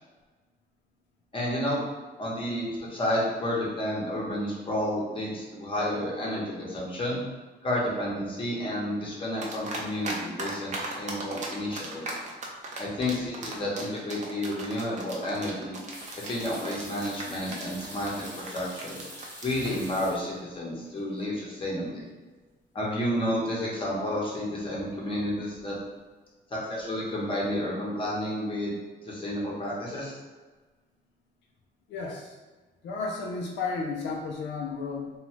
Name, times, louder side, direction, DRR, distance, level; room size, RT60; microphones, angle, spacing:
voice 1, 1.3-1.8 2.2-7.2 7.6-12.1 12.8-15.8 16.2-19.0 19.4-22.1 22.7-25.7 26.5-28.7 29.0-30.2, left 1 dB, 30° left, -5 dB, 0.8 m, -31 dB
sound 1, 9.4-10.1 10.4-19.9, right 3 dB, 40° right, 0.5 m, -37 dB
sound 2, 15.9-20.6 20.8-21.5 21.8-21.9 24.6-25.0 25.3-25.8, equal, 5° left, 1.0 m, -46 dB
voice 2, 31.9-32.4 32.8-35.1, left 4 dB, 85° left, 0 dB, 0.4 m, -33 dB
2.6 x 2.3 x 3.0 m, 1.3 s
wide cardioid pair, 145°, 18 cm